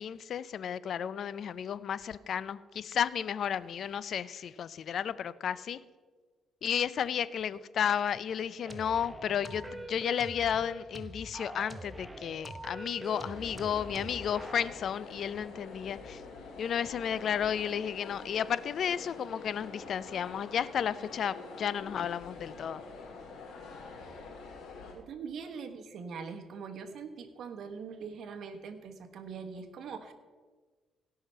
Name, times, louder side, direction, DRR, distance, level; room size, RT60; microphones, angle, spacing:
voice 1, 0.0-5.8 6.6-16.2 16.6-22.8, left 8 dB, 60° left, 17 dB, 0.5 m, -33 dB
sound 1, 8.6-14.7, right 1 dB, 10° right, 1.0 m, -44 dB
sound 2, 13.0-24.9, left 4 dB, 75° left, 3.4 m, -46 dB
voice 2, 24.9-30.1, right 5 dB, 65° right, 7 dB, 1.3 m, -42 dB
16.5 x 5.8 x 5.5 m, 1.4 s
cardioid pair, 90°, 0 cm